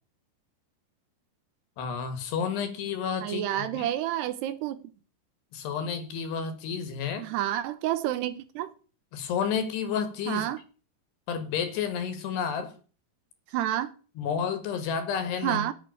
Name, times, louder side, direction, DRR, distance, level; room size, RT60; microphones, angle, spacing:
voice 1, 1.8-3.9 5.5-7.3 9.1-10.5 11.3-12.7 14.2-15.7, left 7 dB, 70° left, 3.6 m, -31 dB
voice 2, 3.2-4.8 7.2-8.7 10.3-10.6 13.5-13.9 15.4-15.7, right 12 dB, 80° right, 2.8 m, -29 dB
8.9 x 8.1 x 9.0 m
omnidirectional pair, 5.1 m